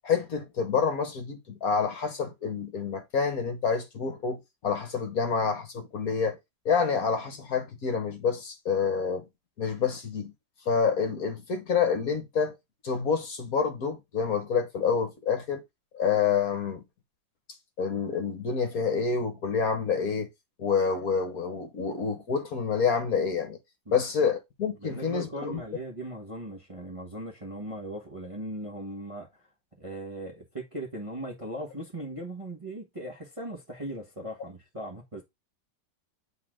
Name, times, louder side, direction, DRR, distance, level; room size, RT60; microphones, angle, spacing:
voice 1, 0.0-6.4 6.6-9.2 9.6-10.3 10.7-12.5 12.8-15.6 15.9-16.8 17.8-20.3 20.6-23.6 23.9-25.6, left 6 dB, 55° left, 1.5 m, -28 dB
voice 2, 24.8-29.5 29.8-35.2, right 1 dB, 20° right, 1.2 m, -38 dB
8.4 x 3.8 x 3.7 m
omnidirectional pair, 2.1 m